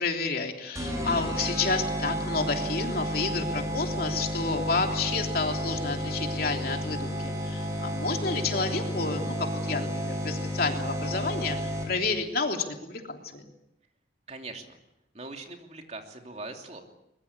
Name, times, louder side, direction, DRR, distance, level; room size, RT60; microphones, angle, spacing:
voice 1, 0.0-11.6 11.9-13.4, left 3 dB, 55° left, 3 dB, 3.3 m, -30 dB
sound 1, 0.7-12.1, equal, 20° right, 5.7 m, -32 dB
voice 2, 14.3-14.8 15.1-16.8, right 3 dB, 40° right, 4 dB, 3.0 m, -41 dB
23.0 x 22.0 x 8.5 m, 0.86 s
head